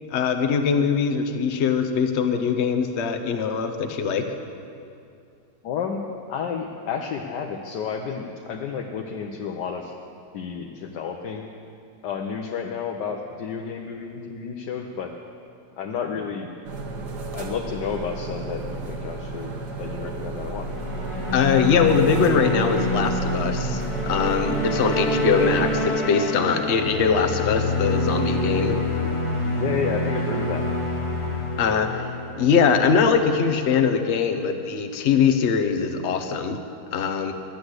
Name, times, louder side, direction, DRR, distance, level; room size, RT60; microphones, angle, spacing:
voice 1, 0.1-4.3 21.3-28.8 31.6-32.1 32.4-36.6 36.9-37.3, left 6 dB, 50° left, 7 dB, 0.9 m, -22 dB
voice 2, 5.6-6.0 6.3-9.9 10.3-11.5 12.0-15.2 15.8-16.5 17.3-20.7 29.6-30.7, left 6 dB, 75° left, 1 dB, 1.4 m, -31 dB
sound 1, 16.6-25.9, right 2 dB, 70° right, 1.7 m, -33 dB
sound 2, 20.6-33.1, left 1 dB, 20° left, 1.2 m, -26 dB
11.5 x 8.6 x 7.9 m, 2.5 s
omnidirectional pair, 1.8 m